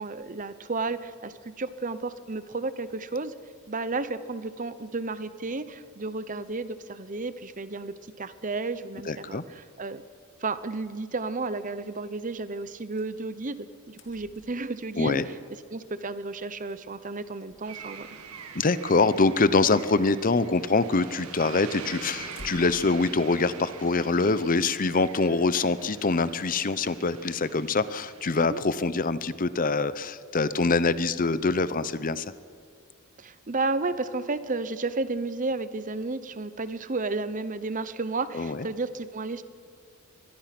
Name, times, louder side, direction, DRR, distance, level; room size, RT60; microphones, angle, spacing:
voice 1, 0.0-3.3 3.7-10.0 10.4-15.4 15.7-18.1 28.4-28.6 33.2-39.4, right 3 dB, 35° right, 13 dB, 0.8 m, -32 dB
voice 2, 9.1-9.4 15.0-15.3 18.5-32.3 38.3-38.7, left 3 dB, 40° left, 15 dB, 0.7 m, -24 dB
sound 1, 13.0-13.1 13.4-13.5 13.7-15.0 16.3-16.4 16.7-16.8 17.3-18.3 18.8-19.0 19.4-20.0 22.1-23.0, left 1 dB, 55° left, 2.4 m, -50 dB
sound 2, 17.7-29.0, right 6 dB, 90° right, 2.0 m, -45 dB
24.0 x 20.5 x 6.0 m, 2.2 s
head